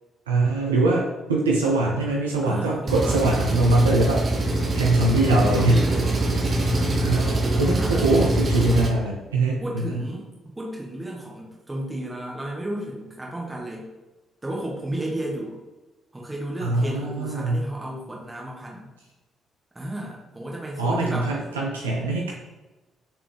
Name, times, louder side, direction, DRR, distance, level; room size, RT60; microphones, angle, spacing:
voice 1, 0.3-4.2 4.7-5.9 6.5-6.7 7.0-10.0 16.6-17.6 20.8-22.3, right 2 dB, 80° right, -3 dB, 0.5 m, -22 dB
voice 2, 2.4-3.3 5.4-6.1 6.8-8.0 9.6-10.3 10.6-13.9 14.4-15.6 16.1-18.9 19.7-21.3, right 1 dB, 15° right, -3 dB, 1.4 m, -33 dB
Engine, 2.9-8.9, right 2 dB, 40° right, 0.6 m, -23 dB
4.3 x 3.3 x 3.4 m, 1.1 s
figure-of-eight pair, 40°, 0 cm